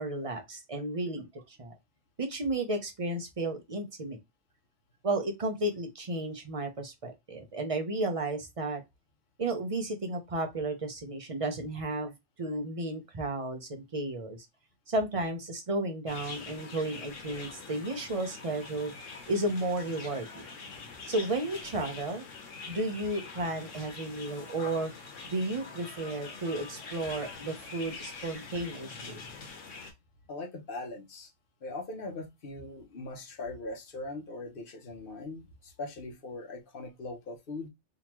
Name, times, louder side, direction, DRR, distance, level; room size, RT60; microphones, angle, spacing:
voice 1, 0.0-1.7 2.2-4.2 5.0-8.8 9.4-12.1 12.4-14.4 14.9-18.9 19.3-20.4 21.1-22.2 22.7-24.9 25.3-29.2, right 2 dB, 30° right, 0.7 m, -33 dB
sound 1, 16.1-29.9, left 4 dB, 75° left, 1.3 m, -44 dB
voice 2, 30.3-31.3 31.6-37.7, left 2 dB, 50° left, 0.9 m, -40 dB
3.7 x 2.9 x 3.0 m
omnidirectional pair, 1.3 m